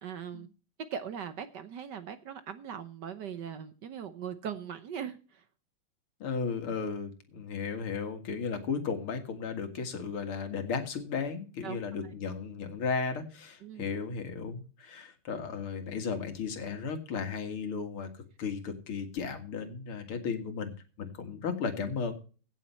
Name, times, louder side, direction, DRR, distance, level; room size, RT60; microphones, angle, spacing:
voice 1, 0.0-0.5 0.9-5.2 11.6-11.8 13.6-13.9, right 8 dB, 60° right, 11 dB, 1.3 m, -40 dB
voice 2, 6.2-20.7 21.0-22.1, left 5 dB, 75° left, 6 dB, 2.8 m, -35 dB
17.0 x 7.2 x 4.4 m, 0.37 s
omnidirectional pair, 2.4 m